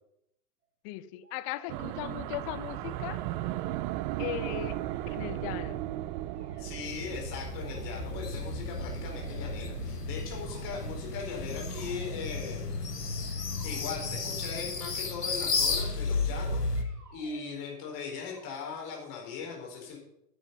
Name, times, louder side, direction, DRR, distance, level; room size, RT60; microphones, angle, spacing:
voice 1, 0.8-3.2 4.2-4.8 5.1-5.8, left 16 dB, 30° left, 0.4 m, -38 dB
sound 1, 1.2-2.1 2.5-4.0 4.3-5.6 6.3-6.8 7.6-8.3 9.0-9.7 10.2-11.0 11.5-12.5 13.3-14.5 15.4-15.9 16.7-17.6 18.0-18.6, right 2 dB, 85° right, 4.3 m, -54 dB
sound 2, 1.7-14.3, right 14 dB, 35° right, 0.5 m, -38 dB
voice 2, 6.6-12.8 13.6-16.6 17.1-20.0, left 5 dB, 45° left, 4.4 m, -39 dB
sound 3, 6.8-16.8, left 4 dB, 90° left, 1.5 m, -34 dB
10.0 x 8.8 x 5.5 m
figure-of-eight pair, 95°, 46 cm